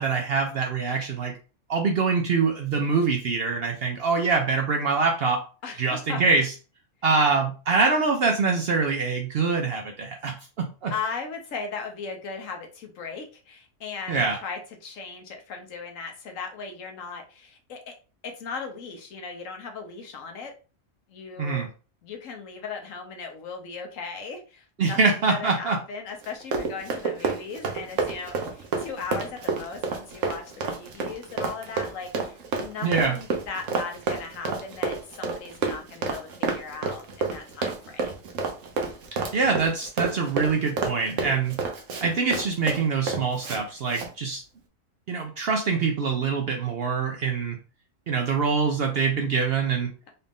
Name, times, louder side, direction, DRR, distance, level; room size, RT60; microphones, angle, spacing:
voice 1, 0.0-1.3 1.7-5.4 5.8-6.5 7.0-10.9 14.1-14.4 21.4-21.7 24.8-25.8 32.8-33.2 39.1-41.6 42.0-44.4 45.1-47.6 48.1-49.9, right 4 dB, 60° right, 3 dB, 0.7 m, -24 dB
voice 2, 5.6-6.2 10.9-17.9 18.2-20.5 21.1-21.7 22.0-38.3, left 5 dB, 85° left, 4 dB, 1.3 m, -37 dB
Run, 26.2-43.6 43.9-44.1, right 4 dB, 80° right, 1.2 m, -29 dB
4.1 x 2.5 x 3.5 m, 0.35 s
omnidirectional pair, 1.3 m